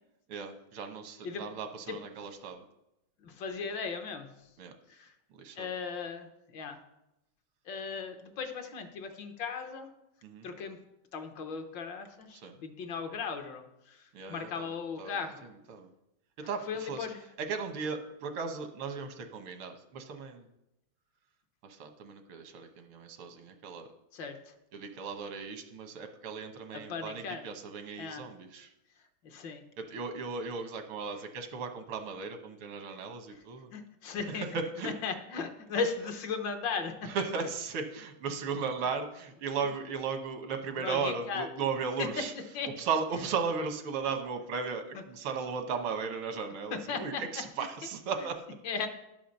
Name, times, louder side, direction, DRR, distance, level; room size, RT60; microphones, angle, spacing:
voice 1, 0.3-2.6 4.6-4.7 5.3-5.7 10.2-10.5 12.3-12.6 14.1-15.9 16.4-17.1 17.4-20.5 21.6-23.9 24.7-28.7 29.8-33.7 34.2-34.9 37.0-42.3 42.8-48.4, right 5 dB, 90° right, 6 dB, 1.9 m, -36 dB
voice 2, 3.2-4.3 4.9-5.1 5.6-6.8 7.6-9.9 10.4-10.8 11.1-15.4 16.7-17.2 24.1-24.5 26.7-27.4 28.0-28.3 29.2-29.6 33.7-34.4 34.8-37.1 40.8-41.5 42.0-42.1 42.5-42.7 46.7-47.2 48.6-48.9, left 5 dB, 65° left, 6 dB, 1.6 m, -37 dB
11.0 x 5.7 x 6.4 m, 0.89 s
omnidirectional pair, 2.3 m